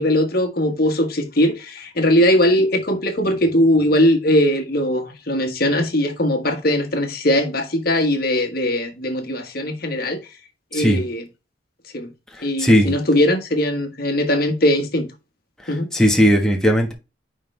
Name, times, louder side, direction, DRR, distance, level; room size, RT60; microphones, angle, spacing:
voice 1, 0.0-10.2 10.7-11.2 11.9-12.1 12.4-15.1 15.7-15.9, left 1 dB, 55° left, 1.4 m, -20 dB
voice 2, 12.4-13.0 15.6-16.9, equal, 5° left, 1.3 m, -17 dB
10.0 x 3.7 x 3.3 m
head